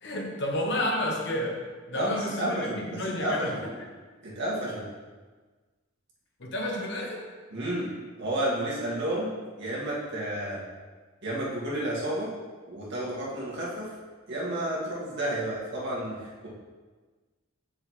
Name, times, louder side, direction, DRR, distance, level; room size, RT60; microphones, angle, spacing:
voice 1, 0.0-1.6 1.9-3.5 6.4-7.3, left 1 dB, 55° left, 1 dB, 1.1 m, -30 dB
voice 2, 1.9-3.6 4.2-4.8 7.5-7.9 8.2-9.3 9.6-10.7 11.2-12.3 12.7-14.0 14.3-16.5, right 1 dB, 55° right, -6 dB, 2.1 m, -31 dB
8.1 x 6.5 x 3.2 m, 1.4 s
head